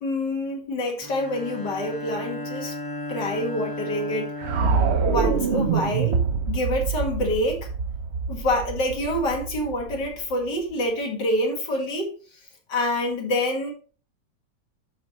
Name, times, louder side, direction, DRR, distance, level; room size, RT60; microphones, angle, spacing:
voice 1, 0.0-2.7 3.1-4.3 5.1-6.2 6.5-7.7 8.3-12.1 12.7-13.7, left 1 dB, 70° left, 1 dB, 2.6 m, -26 dB
Bowed string instrument, 1.0-5.6, left 1 dB, 20° left, 0.5 m, -35 dB
sound 1, 4.4-10.5, right 5 dB, 50° right, 0.8 m, -25 dB
12.5 x 5.1 x 3.1 m, 0.39 s
omnidirectional pair, 2.0 m